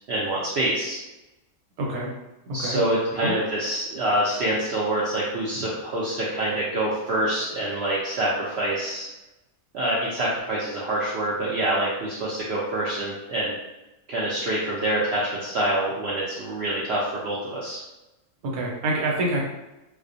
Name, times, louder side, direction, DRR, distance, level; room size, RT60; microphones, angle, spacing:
voice 1, 0.1-1.0 2.5-9.1 9.7-13.5 14.1-17.8, right 1 dB, 65° right, -6 dB, 0.6 m, -26 dB
voice 2, 1.8-2.1 2.6-2.8 3.2-3.4 18.5-19.4, right 1 dB, 85° right, -2 dB, 1.2 m, -26 dB
2.4 x 2.1 x 2.5 m, 1.0 s
omnidirectional pair, 1.5 m